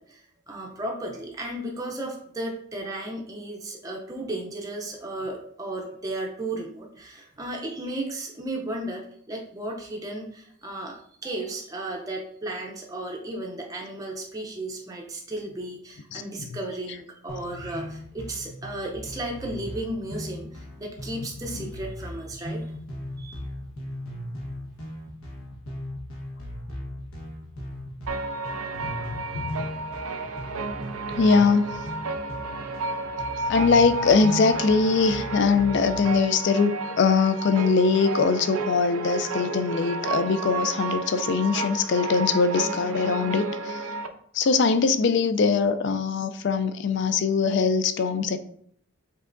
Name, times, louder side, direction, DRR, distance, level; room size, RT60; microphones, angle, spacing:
voice 1, 0.0-11.0 11.2-22.6 23.2-23.4, right 1 dB, 15° right, -1 dB, 0.5 m, -34 dB
sound 1, 17.3-36.1, left 1 dB, 75° left, 1.2 m, -38 dB
sound 2, 28.1-44.1, right 3 dB, 75° right, 0.5 m, -32 dB
voice 2, 28.8-29.6 31.1-31.8 33.5-43.8 44.3-48.4, left 4 dB, 50° left, 11 dB, 0.3 m, -22 dB
5.4 x 3.7 x 2.5 m, 0.64 s
head